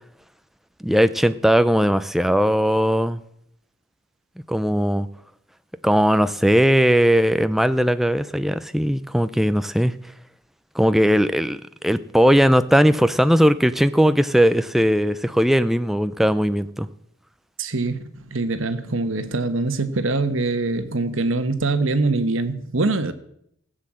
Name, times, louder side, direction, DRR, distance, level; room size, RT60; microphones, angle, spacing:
voice 1, 0.8-3.2 4.5-5.1 5.8-9.9 10.7-16.9, equal, ahead, 0.4 m, -18 dB
voice 2, 17.6-23.1, right 3 dB, 80° right, 1.2 m, -23 dB
15.5 x 7.7 x 7.5 m
head